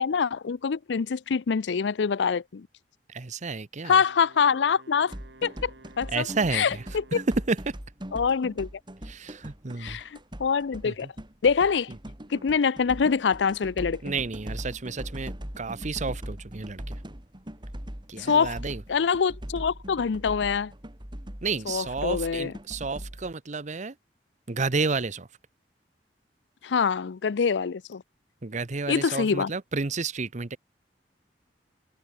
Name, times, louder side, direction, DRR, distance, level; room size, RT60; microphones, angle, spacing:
voice 1, 0.0-2.7 3.8-5.1 5.4-5.7 6.0-6.3 6.5-7.2 8.1-8.7 9.8-10.1 10.4-11.1 11.4-11.9 12.3-14.0 18.2-18.6 18.9-20.7 21.7-22.5 26.6-28.0 28.9-29.5, left 6 dB, 90° left, 0.5 m, -25 dB
voice 2, 3.1-4.0 6.1-6.8 7.1-7.7 9.1-10.0 10.8-11.1 14.0-16.9 18.1-18.8 21.4-23.9 24.5-25.3 28.4-30.6, right 4 dB, 45° right, 0.9 m, -31 dB
Wind instrument woodwind instrument, 3.9-7.7, right 2 dB, 80° right, 2.3 m, -53 dB
sound 1, 5.1-23.3, equal, 25° right, 3.1 m, -40 dB
head